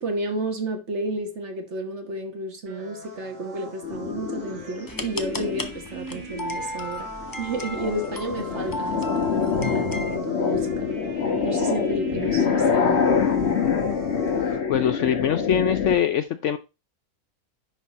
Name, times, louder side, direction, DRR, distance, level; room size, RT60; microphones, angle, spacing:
voice 1, 0.0-7.1 7.4-10.9 11.4-13.1, right 2 dB, 50° right, 1.7 m, -32 dB
sound 1, 2.7-14.6, right 2 dB, 75° right, 4.9 m, -41 dB
sound 2, 3.8-5.8 6.4-6.8 7.2-16.0, left 6 dB, 50° left, 1.4 m, -25 dB
sound 3, 4.9-10.2, left 1 dB, 30° left, 0.4 m, -35 dB
voice 2, 14.7-16.6, left 9 dB, 65° left, 0.8 m, -23 dB
10.5 x 4.1 x 4.1 m
omnidirectional pair, 1.6 m